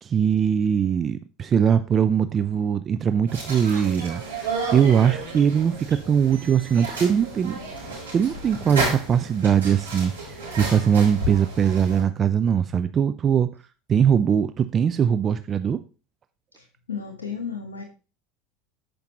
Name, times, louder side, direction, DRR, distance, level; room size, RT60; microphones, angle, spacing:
voice 1, 0.0-7.6 8.1-13.5 13.9-15.8, right 8 dB, 35° right, 11 dB, 0.4 m, -21 dB
sound 1, 3.3-12.0, right 2 dB, 90° right, 4.4 m, -32 dB
voice 2, 16.6-17.8, left 6 dB, 80° left, 4 dB, 1.2 m, -34 dB
14.0 x 5.2 x 3.0 m, 0.34 s
hypercardioid pair, 75°, 0 cm